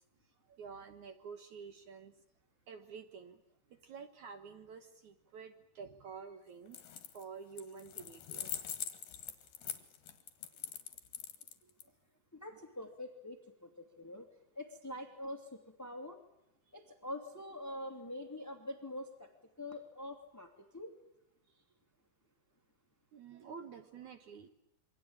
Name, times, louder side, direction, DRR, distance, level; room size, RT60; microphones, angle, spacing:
voice 1, 0.5-2.1 2.7-3.4 3.7-6.8 7.1-8.5 11.6-11.7 21.5-21.6 23.1-24.5, right 6 dB, 60° right, 8 dB, 2.4 m, -49 dB
sound 1, 6.7-7.2 7.6-11.8, left 10 dB, 70° left, 3.6 m, -43 dB
voice 2, 12.3-14.2 14.5-15.5 15.8-16.2 16.7-19.3 19.6-20.9, left 1 dB, 5° left, 5 dB, 1.8 m, -45 dB
27.5 x 24.0 x 8.8 m, 0.83 s
omnidirectional pair, 4.3 m